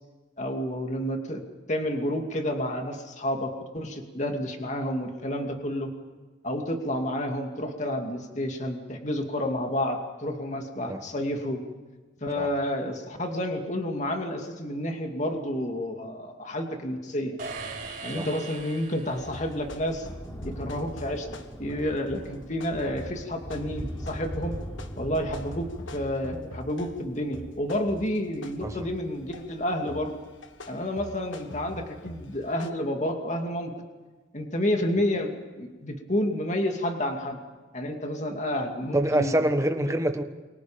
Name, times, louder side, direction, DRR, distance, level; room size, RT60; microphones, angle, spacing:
voice 1, 0.4-1.4 1.7-5.9 6.4-11.6 12.2-17.4 18.0-20.1 20.4-21.3 21.6-24.5 25.0-30.1 30.7-33.7 34.3-37.4 37.7-39.3 39.8-39.9, left 1 dB, 40° left, 3 dB, 2.5 m, -30 dB
sound 1, 17.4-19.6, right 3 dB, 45° right, 4.3 m, -39 dB
Thunder, 18.6-31.5 32.3-32.4, equal, 15° left, 3.5 m, -42 dB
sound 2, 19.2-27.0 27.3-29.5 29.9-32.7, left 1 dB, 90° left, 1.6 m, -44 dB
voice 2, 38.9-40.2, right 1 dB, 15° right, 7 dB, 1.4 m, -25 dB
28.5 x 24.0 x 5.2 m, 1.3 s
head